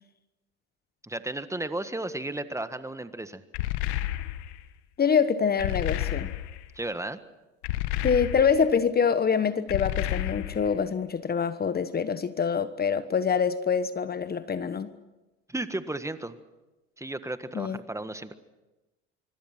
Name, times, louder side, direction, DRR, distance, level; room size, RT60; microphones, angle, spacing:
voice 1, 1.0-3.4 6.7-7.2 15.5-16.4 17.0-18.3, right 2 dB, 10° right, 11 dB, 1.6 m, -34 dB
sound 1, 3.5-4.6 5.6-6.7 7.6-8.7 9.7-10.8, left 14 dB, 70° left, 1.6 m, -31 dB
voice 2, 5.0-6.3 8.0-14.9 17.5-17.8, left 6 dB, 30° left, 13 dB, 1.2 m, -25 dB
25.0 x 25.0 x 5.9 m, 1.1 s
hypercardioid pair, 80°, 33 cm